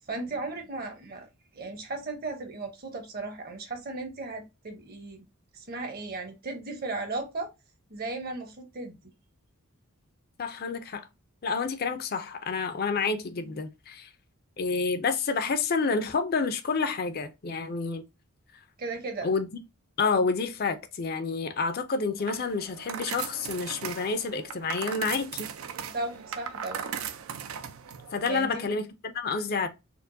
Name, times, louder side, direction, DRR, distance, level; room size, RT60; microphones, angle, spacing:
voice 1, 0.1-1.3 1.5-5.2 5.5-7.5 7.9-9.0 18.8-19.3 25.8-26.9 28.2-28.6, right 3 dB, 45° right, 0.9 m, -36 dB
voice 2, 10.4-11.1 11.4-14.1 14.6-18.0 19.2-19.5 20.0-25.5 28.1-29.7, left 4 dB, 45° left, 0.5 m, -29 dB
sound 1, 22.2-28.3, right 8 dB, 70° right, 0.4 m, -38 dB
4.4 x 2.1 x 2.6 m
head